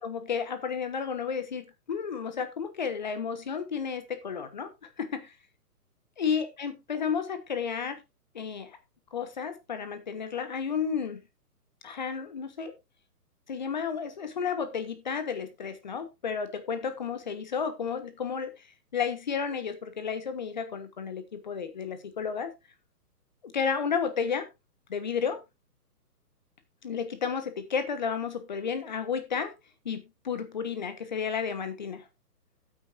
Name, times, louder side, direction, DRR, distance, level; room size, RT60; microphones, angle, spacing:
voice 1, 0.0-4.7 5.0-5.3 6.2-8.0 8.3-8.8 9.1-11.2 11.8-12.7 13.5-18.5 18.9-22.5 23.4-24.5 24.9-25.4 26.8-29.5 29.8-32.0, left 6 dB, 30° left, 10 dB, 1.1 m, -32 dB
13.5 x 8.7 x 2.6 m, 0.23 s
hypercardioid pair, 175°, 47 cm